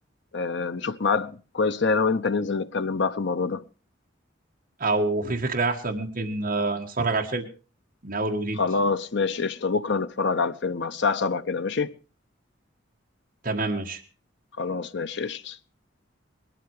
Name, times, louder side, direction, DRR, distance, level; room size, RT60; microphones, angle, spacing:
voice 1, 0.3-3.6 8.6-11.9 14.6-15.6, left 4 dB, 60° left, 0.8 m, -26 dB
voice 2, 4.8-7.4 8.0-8.6 13.4-14.0, right 3 dB, 45° right, 1.7 m, -26 dB
20.5 x 13.0 x 4.9 m
head